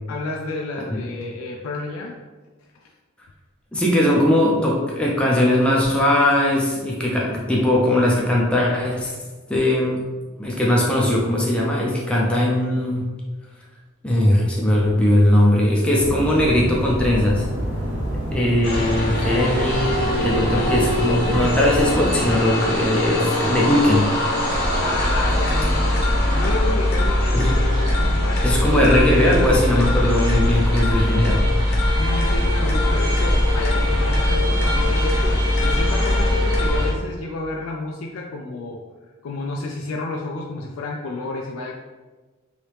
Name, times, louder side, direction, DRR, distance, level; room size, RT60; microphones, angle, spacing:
voice 1, 0.1-2.1 2.7-2.9 24.8-26.0 26.3-28.6 32.0-38.8 39.2-41.7, left 2 dB, 80° left, 0 dB, 0.3 m, -31 dB
voice 2, 3.7-9.2 9.5-10.0 10.4-13.0 14.0-17.5 18.3-19.9 20.2-24.1 27.3-27.5 28.4-31.5, left 1 dB, 5° left, -4 dB, 0.4 m, -19 dB
sound 1, 15.9-22.4, equal, 55° right, 0.8 m, -27 dB
sound 2, 18.6-36.9, left 1 dB, 50° left, 0.8 m, -21 dB
3.0 x 2.7 x 3.3 m, 1.3 s
head